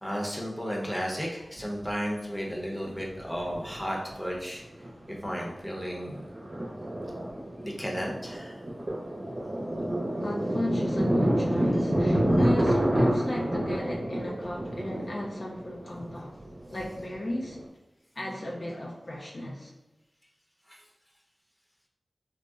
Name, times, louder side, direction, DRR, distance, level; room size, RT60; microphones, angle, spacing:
voice 1, 0.0-4.6 5.1-6.2 7.6-8.6 20.7-20.8, equal, 10° left, -2 dB, 0.7 m, -33 dB
Thunder, 1.6-1.7 3.0-4.1 4.6-4.9 5.2-17.6, right 1 dB, 70° right, 0.8 m, -28 dB
voice 2, 10.2-16.4 16.7-17.6 18.1-19.7, left 1 dB, 50° left, -2 dB, 0.4 m, -36 dB
3.7 x 2.0 x 2.3 m, 0.98 s
wide cardioid pair, 50°, 0 cm